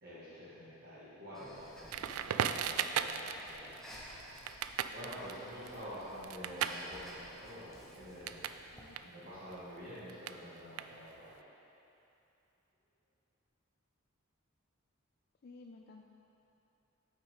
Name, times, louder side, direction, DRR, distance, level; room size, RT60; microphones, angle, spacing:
voice 1, 0.0-8.5 9.0-11.4, equal, 50° right, -12 dB, 1.6 m, -48 dB
Breathing, 1.3-9.0, equal, ahead, 0.8 m, -55 dB
Crackle, 1.9-8.6 8.9-11.3, right 9 dB, 90° right, 0.3 m, -38 dB
voice 2, 8.7-9.1 15.4-16.1, left 3 dB, 50° left, 2 dB, 0.3 m, -54 dB
8.7 x 5.9 x 3.6 m, 2.8 s
head